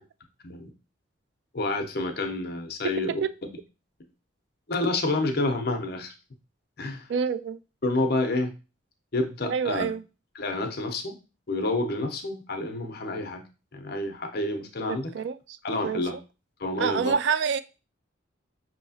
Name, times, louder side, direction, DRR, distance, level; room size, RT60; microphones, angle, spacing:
voice 1, 1.5-3.2 4.7-6.1 6.8-7.1 7.8-8.5 9.1-9.9 10.3-11.2 11.5-13.4 13.7-15.1 15.6-16.2 16.6-17.1, left 2 dB, 50° left, 0.7 m, -28 dB
voice 2, 7.1-7.6 9.4-10.0 14.9-15.6 15.8-16.0 16.8-17.6, right 6 dB, 60° right, 0.3 m, -27 dB
5.5 x 2.9 x 2.7 m
head